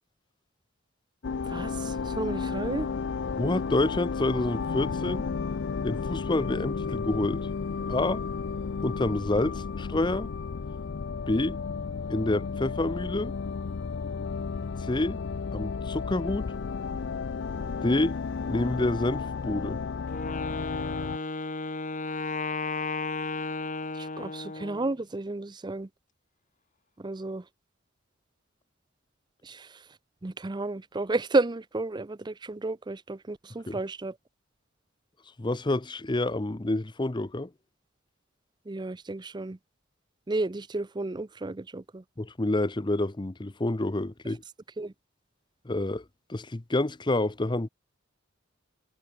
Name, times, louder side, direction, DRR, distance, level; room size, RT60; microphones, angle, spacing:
sound 1, 1.2-21.2, left 5 dB, 60° left, 0.5 m, -33 dB
voice 1, 1.5-2.9 23.9-25.9 27.0-27.4 29.4-29.8 30.2-34.1 38.7-39.6 40.3-42.0 44.8-44.9, right 2 dB, 20° right, 0.5 m, -32 dB
voice 2, 3.4-5.2 5.8-7.5 7.9-8.2 8.8-10.3 11.3-11.6 12.1-13.3 14.8-15.2 15.5-16.5 17.8-18.2 18.5-19.8 33.7-33.8 35.4-37.5 42.2-44.4 45.6-46.0 46.3-47.7, left 2 dB, 20° left, 0.7 m, -28 dB
Wind instrument woodwind instrument, 20.1-24.9, left 3 dB, 40° left, 1.9 m, -33 dB
head